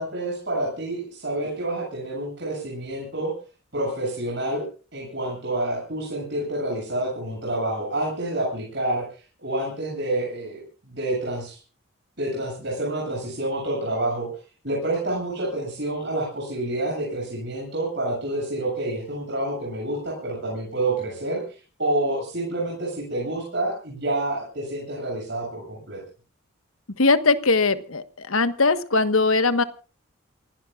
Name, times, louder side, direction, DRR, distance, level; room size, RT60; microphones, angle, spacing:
voice 1, 0.0-3.3 3.7-4.6 4.9-9.1 9.4-11.6 12.2-14.3 14.6-21.4 21.8-26.0, right 1 dB, 55° right, -3 dB, 7.9 m, -28 dB
voice 2, 27.0-29.6, left 3 dB, 80° left, 10 dB, 1.4 m, -20 dB
28.0 x 17.5 x 2.5 m, 0.36 s
head